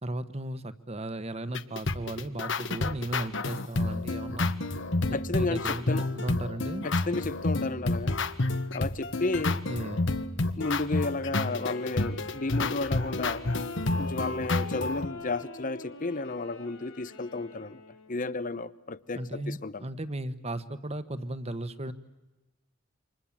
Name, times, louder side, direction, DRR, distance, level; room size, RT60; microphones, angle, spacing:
voice 1, 0.0-4.5 5.3-6.9 9.7-10.0 19.1-21.9, right 1 dB, 30° right, 1.4 m, -36 dB
sound 1, 1.5-15.1, left 2 dB, 65° left, 1.4 m, -30 dB
voice 2, 5.1-6.1 6.8-8.2 8.7-9.6 10.6-13.4 14.0-17.8 18.1-19.9, left 3 dB, 40° left, 0.9 m, -32 dB
Wind instrument woodwind instrument, 11.4-18.3, left 2 dB, 85° left, 5.4 m, -46 dB
29.0 x 26.0 x 7.5 m
head